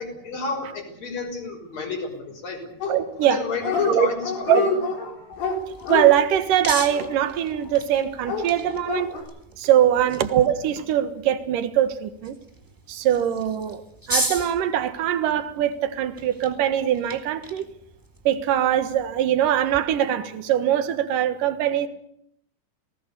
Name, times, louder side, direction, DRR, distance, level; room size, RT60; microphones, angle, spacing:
voice 1, 0.0-2.9 3.3-4.7, left 4 dB, 40° left, 7.1 m, -31 dB
Dog, 2.8-3.3 3.6-3.9 4.2-7.6 8.2-9.2, left 4 dB, 90° left, 7.5 m, -27 dB
voice 2, 2.9-3.4 3.8-4.1 4.5-4.6 5.9-9.2 9.6-12.4 12.9-13.8 14.1-17.7 18.2-21.9, right 11 dB, 60° right, 2.8 m, -22 dB
sound 1, 5.3-19.8, right 1 dB, 10° right, 1.1 m, -37 dB
29.5 x 19.0 x 7.0 m
omnidirectional pair, 4.8 m